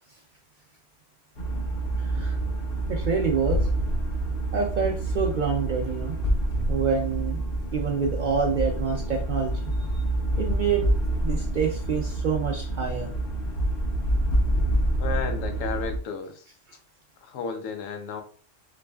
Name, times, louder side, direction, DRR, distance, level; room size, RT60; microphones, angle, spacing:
sound 1, 1.4-16.0, right 1 dB, 50° left, 0.9 m, -27 dB
voice 1, 2.0-2.4 2.9-3.7 4.5-6.1 6.7-7.4 7.7-10.0 10.4-10.9 11.2-13.1, right 6 dB, 65° right, 1 dB, 0.5 m, -27 dB
voice 2, 15.0-16.4 17.2-18.2, left 5 dB, 90° left, 6 dB, 1.1 m, -33 dB
4.0 x 3.2 x 2.3 m, 0.42 s
omnidirectional pair, 1.3 m